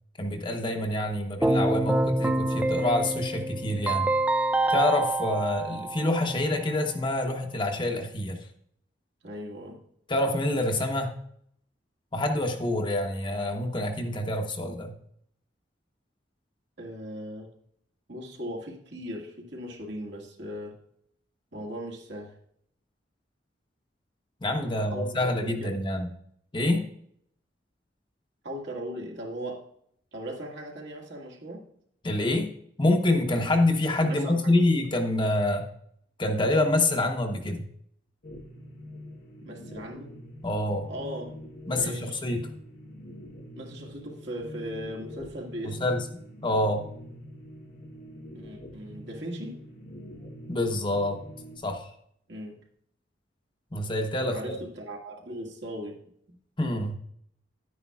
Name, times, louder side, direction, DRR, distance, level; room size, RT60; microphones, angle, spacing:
voice 1, 0.2-4.1 4.7-8.4 10.1-11.1 12.1-14.9 24.4-26.1 26.5-26.8 32.0-32.5 32.8-35.6 36.2-37.7 40.4-40.9 41.7-42.5 45.6-46.0 46.4-46.8 50.5-51.2 51.6-51.9 53.7-54.5 56.6-57.0, left 1 dB, 25° left, 4 dB, 0.9 m, -26 dB
Keyboard (musical), 1.4-6.4, right 2 dB, 5° right, 0.3 m, -26 dB
voice 2, 9.2-9.8 10.7-10.8 16.8-17.5 18.1-20.8 21.5-22.3 24.7-25.7 28.4-29.7 30.1-31.7 34.1-34.8 39.4-40.1 40.9-41.4 41.7-42.2 43.6-45.9 48.3-49.6 52.3-52.6 54.3-56.1, equal, 70° right, -1 dB, 1.9 m, -38 dB
sound 1, 38.2-51.6, left 1 dB, 55° left, 1.1 m, -44 dB
10.5 x 9.5 x 2.4 m, 0.68 s
head